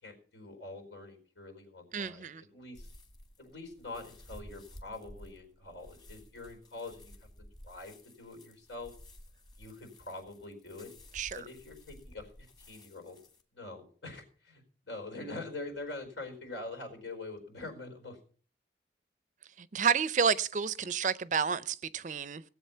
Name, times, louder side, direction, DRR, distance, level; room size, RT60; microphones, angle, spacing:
voice 1, 0.0-2.9 3.4-7.1 7.4-8.9 9.6-10.9 11.3-12.3 12.7-13.2 13.5-18.2, left 2 dB, 90° left, 4.6 m, -44 dB
voice 2, 1.9-2.4 11.1-11.5 19.6-22.4, right 6 dB, 45° right, 0.5 m, -30 dB
sound 1, 2.7-13.4, left 1 dB, 25° left, 1.6 m, -54 dB
18.0 x 7.9 x 5.5 m
head